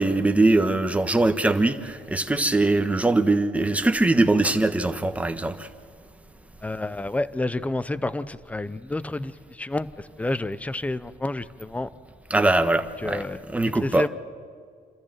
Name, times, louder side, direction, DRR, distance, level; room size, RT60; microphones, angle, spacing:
voice 1, 0.0-5.7 12.3-14.1, right 2 dB, 10° right, 1.3 m, -22 dB
voice 2, 6.6-11.9 13.0-13.4 13.8-14.1, left 2 dB, 10° left, 0.7 m, -29 dB
29.0 x 13.5 x 7.5 m
cardioid pair, 110°, 17 cm